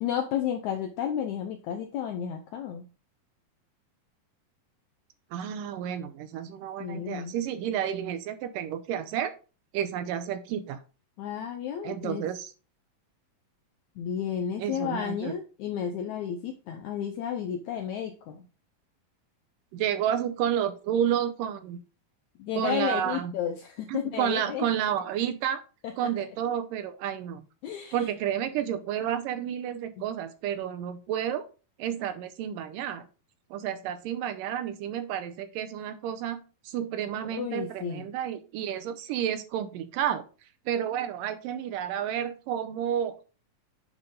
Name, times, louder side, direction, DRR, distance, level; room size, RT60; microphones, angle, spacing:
voice 1, 0.0-2.8 6.8-7.3 11.2-12.2 14.0-18.4 22.4-24.7 25.8-26.1 27.6-28.0 37.3-38.0, left 9 dB, 80° left, 4 dB, 1.7 m, -32 dB
voice 2, 5.3-9.4 9.7-10.8 11.8-12.5 14.6-15.3 19.7-21.8 22.5-23.3 23.9-25.6 26.0-27.4 27.9-31.5 31.8-33.0 33.5-40.2 40.7-43.2, right 9 dB, 75° right, 10 dB, 2.2 m, -30 dB
9.6 x 4.5 x 3.8 m, 0.34 s
omnidirectional pair, 4.2 m